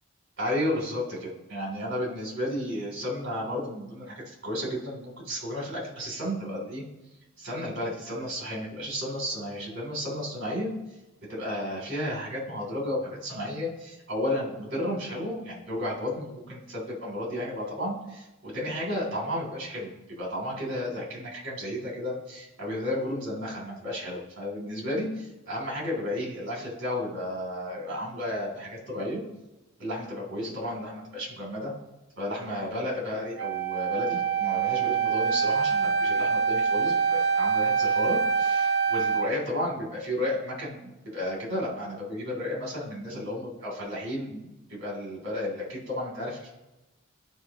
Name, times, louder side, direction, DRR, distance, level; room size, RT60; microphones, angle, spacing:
voice 1, 0.4-6.8 7.4-10.7 11.3-19.9 20.2-29.2 29.8-31.7 32.2-46.5, left 1 dB, 60° right, -3 dB, 2.9 m, -33 dB
Wind instrument woodwind instrument, 33.4-39.3, right 6 dB, 85° right, 0.7 m, -25 dB
12.5 x 5.0 x 2.9 m, 1.0 s
head